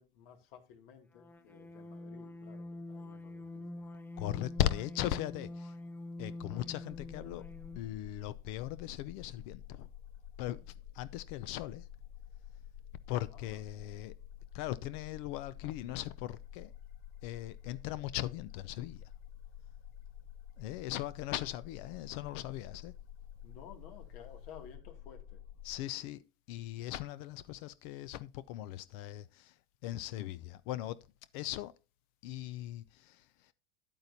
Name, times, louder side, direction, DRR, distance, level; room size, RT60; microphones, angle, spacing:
voice 1, 0.0-3.6 13.3-13.6 23.4-25.4, left 7 dB, 75° left, 2.3 m, -54 dB
sound 1, 1.1-8.0, left 2 dB, 5° left, 0.5 m, -45 dB
voice 2, 4.2-5.7 6.2-7.4 7.8-9.9 10.4-10.6 10.9-11.8 13.1-14.1 14.5-16.7 17.2-19.1 20.6-22.9 25.6-26.2 26.5-29.5 29.8-31.0 31.3-31.7 32.2-33.2, left 14 dB, 55° left, 0.6 m, -38 dB
sound 2, 6.9-25.8, left 10 dB, 90° left, 3.2 m, -50 dB
9.8 x 8.7 x 2.7 m
supercardioid pair, 120°, 30 cm